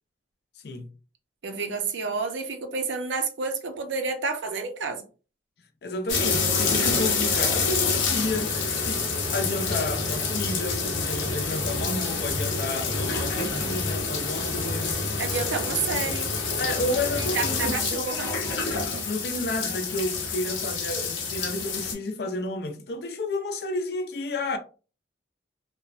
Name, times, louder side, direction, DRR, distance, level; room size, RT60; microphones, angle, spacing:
voice 1, 1.4-5.0 15.2-16.3 17.3-18.3, right 4 dB, 85° right, 0.5 m, -30 dB
voice 2, 5.8-15.1 16.6-18.0 19.1-24.6, left 2 dB, 60° left, 0.4 m, -31 dB
sound 1, 6.1-21.9, left 4 dB, 90° left, 0.7 m, -27 dB
2.9 x 2.1 x 2.4 m
head